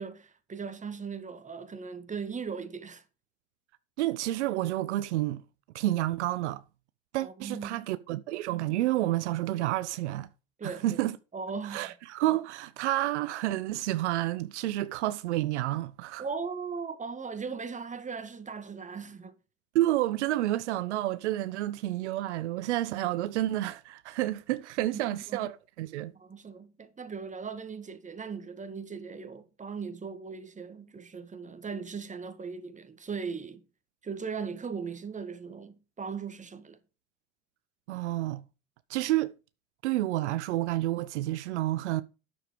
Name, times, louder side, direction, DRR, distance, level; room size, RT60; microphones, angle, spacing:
voice 1, 0.0-3.0 7.2-7.9 10.6-11.0 11.3-11.9 16.2-19.3 24.8-25.5 26.1-33.6 34.0-36.8, right 5 dB, 20° right, 1.6 m, -38 dB
voice 2, 4.0-5.4 5.7-6.6 7.1-10.3 10.6-11.2 11.6-16.2 19.7-26.1 37.9-38.4 38.9-39.3 39.8-42.0, right 15 dB, 85° right, 0.6 m, -30 dB
9.8 x 7.0 x 5.1 m
hypercardioid pair, 80°, 34 cm